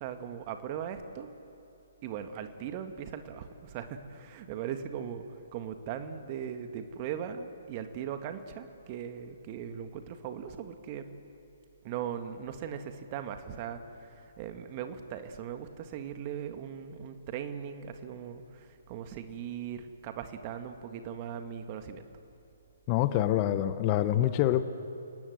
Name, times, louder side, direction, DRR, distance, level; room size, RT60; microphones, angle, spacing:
voice 1, 0.0-1.3 2.0-5.2 5.5-11.0 11.8-22.0, right 8 dB, 35° right, 7 dB, 1.9 m, -39 dB
voice 2, 22.9-24.6, left 13 dB, 30° left, 12 dB, 1.0 m, -26 dB
29.5 x 18.5 x 8.0 m, 2.7 s
figure-of-eight pair, 130°, 0 cm